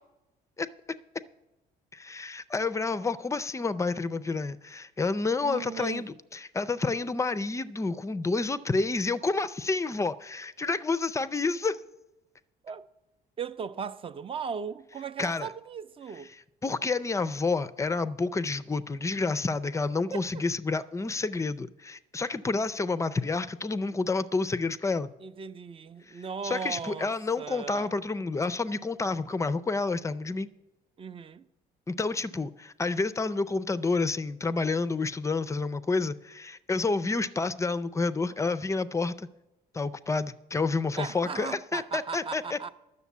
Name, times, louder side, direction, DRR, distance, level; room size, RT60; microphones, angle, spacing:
voice 1, 1.9-11.8 15.2-15.5 16.6-25.1 26.1-30.5 31.9-39.3 39.7-42.6, left 3 dB, 15° left, 0.4 m, -29 dB
voice 2, 5.4-6.0 12.6-12.9 13.4-16.3 20.1-20.2 25.2-27.9 31.0-31.5 41.0-42.7, right 6 dB, 30° right, 0.5 m, -37 dB
11.0 x 6.6 x 8.3 m
cardioid pair, 110°, 17 cm